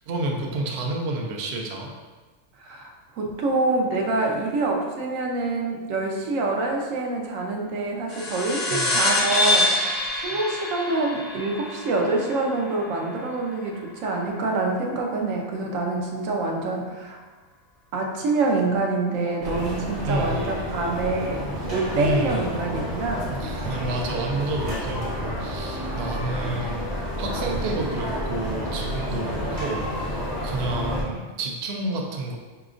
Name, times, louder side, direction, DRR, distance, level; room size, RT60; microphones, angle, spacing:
voice 1, 0.1-1.9 8.7-8.9 20.0-20.5 21.9-22.5 23.3-26.8 27.2-32.4, right 2 dB, 65° right, 0 dB, 0.7 m, -30 dB
voice 2, 2.6-17.2 17.9-23.3, right 3 dB, 85° right, 0 dB, 1.0 m, -26 dB
sound 1, 8.1-13.0, left 2 dB, 45° left, 0.5 m, -25 dB
sound 2, 19.4-31.0, equal, 20° right, 0.7 m, -30 dB
4.9 x 2.8 x 2.4 m, 1.3 s
omnidirectional pair, 1.3 m